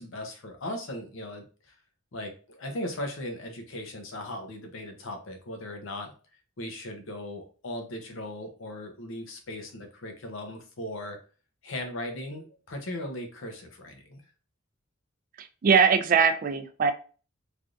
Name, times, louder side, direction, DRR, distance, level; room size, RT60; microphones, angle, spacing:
voice 1, 0.0-1.7 2.1-6.1 6.6-11.2 11.6-14.2, left 1 dB, 85° left, 4 dB, 0.7 m, -38 dB
voice 2, 15.4-16.9, right 6 dB, 45° right, 9 dB, 0.3 m, -22 dB
3.3 x 2.6 x 2.4 m, 0.37 s
head